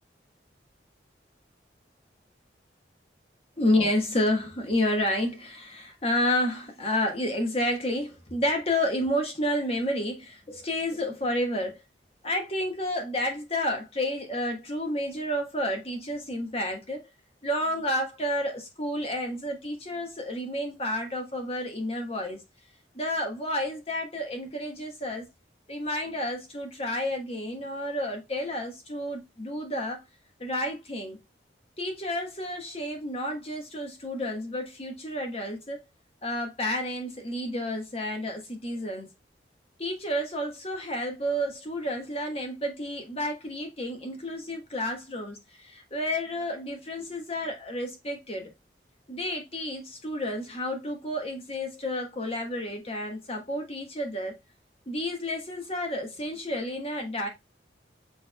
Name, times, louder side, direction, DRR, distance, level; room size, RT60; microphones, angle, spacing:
voice 1, 3.6-11.8 12.2-17.0 17.4-22.4 22.9-25.3 25.7-30.0 30.4-31.2 31.8-35.8 36.2-39.1 39.8-48.5 49.1-54.4 54.9-57.3, left 1 dB, 35° left, 1.3 m, -30 dB
6.4 x 3.5 x 2.2 m
head